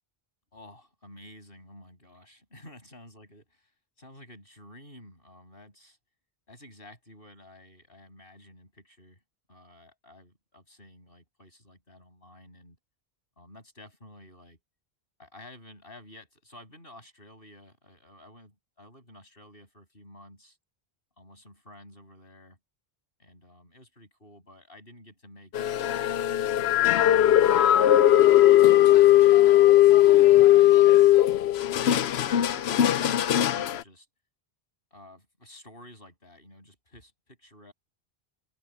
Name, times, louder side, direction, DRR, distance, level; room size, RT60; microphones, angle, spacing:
voice 1, 0.5-3.7 4.0-6.0 6.5-9.2 9.5-12.8 13.4-14.6 15.2-20.6 21.2-22.6 23.2-27.0 28.0-30.6 31.3-31.5 31.9-34.1 34.9-37.7, left 1 dB, 60° left, 8.1 m, -52 dB
sound 1, 25.5-33.8, left 13 dB, 85° left, 0.9 m, -19 dB
omnidirectional pair, 1.0 m